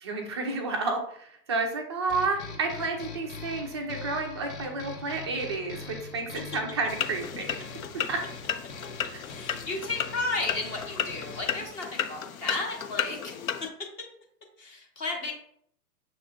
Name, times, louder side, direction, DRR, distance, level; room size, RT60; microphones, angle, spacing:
voice 1, 0.0-7.6 8.1-8.2 9.1-9.2, right 3 dB, 20° right, 2 dB, 0.4 m, -31 dB
sound 1, 2.1-11.7, left 4 dB, 45° left, 1.0 m, -43 dB
sound 2, 6.9-13.7, left 9 dB, 65° left, 0.6 m, -34 dB
voice 2, 9.2-13.3 13.6-13.7 14.6-15.3, left 3 dB, 20° left, 1 dB, 0.6 m, -33 dB
6.3 x 3.1 x 2.6 m, 0.65 s
figure-of-eight pair, 115°, 46 cm